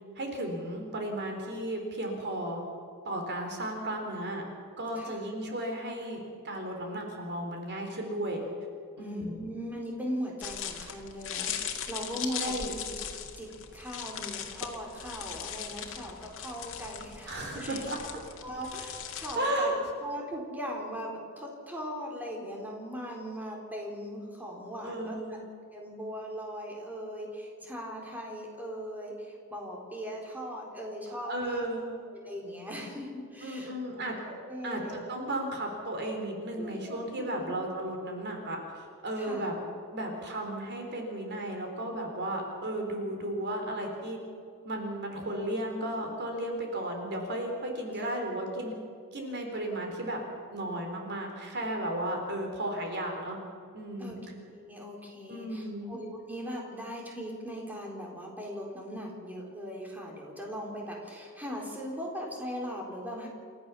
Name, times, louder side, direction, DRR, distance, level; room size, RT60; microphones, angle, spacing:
voice 1, 0.2-2.6 3.1-4.4 4.8-8.4 9.0-9.4 12.2-12.7 17.3-18.0 19.4-19.7 24.8-25.4 31.2-31.9 33.4-34.2 34.6-39.5 39.9-44.2 44.6-48.7 49.1-50.2 50.5-53.4 53.7-54.2 55.3-55.9, right 1 dB, 55° right, 2 dB, 3.7 m, -34 dB
voice 2, 9.0-13.1 13.4-17.8 18.4-19.7 20.0-25.4 25.7-31.6 32.2-33.7 34.3-35.0 36.6-37.5 39.2-39.4 47.9-48.2 54.0-54.2 54.4-63.3, equal, 10° right, -1 dB, 4.2 m, -39 dB
sound 1, 10.4-19.4, left 8 dB, 65° left, 2.2 m, -39 dB
29.0 x 14.0 x 7.1 m, 2.3 s
head